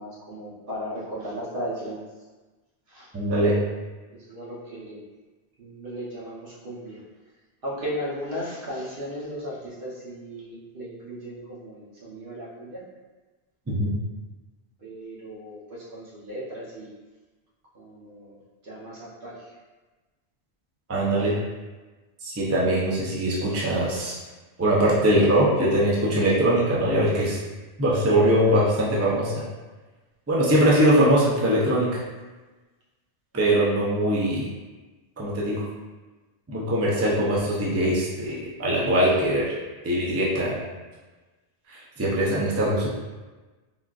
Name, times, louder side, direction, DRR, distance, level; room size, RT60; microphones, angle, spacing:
voice 1, 0.0-2.0 2.9-3.1 4.1-5.0 5.6-7.0 7.6-12.8 14.8-16.9 17.7-18.4 18.6-19.5 23.5-24.1, equal, 55° right, -7 dB, 1.0 m, -36 dB
voice 2, 3.1-3.5 13.7-13.9 20.9-21.3 22.2-24.2 24.6-27.4 27.8-29.3 30.3-32.0 33.3-34.4 35.2-35.6 36.5-39.5 39.8-40.6 41.7-42.9, right 1 dB, 25° right, -6 dB, 0.3 m, -22 dB
3.6 x 2.4 x 2.4 m, 1.2 s
omnidirectional pair, 1.1 m